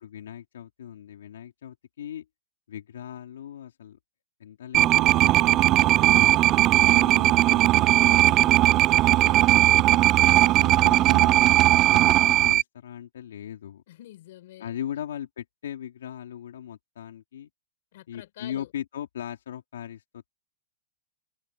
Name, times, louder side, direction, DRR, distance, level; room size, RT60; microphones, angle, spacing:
voice 1, 0.0-2.3 2.7-4.0 4.4-6.3 6.9-9.1 9.8-13.8 14.6-17.5 18.1-20.3, left 10 dB, 85° left, 3.2 m, -39 dB
sound 1, 4.7-12.6, right 15 dB, 35° right, 0.4 m, -18 dB
voice 2, 6.5-7.0 9.0-10.0 13.9-14.7 17.9-18.7, left 15 dB, 65° left, 4.9 m, -47 dB
open air
hypercardioid pair, 135°, 0 cm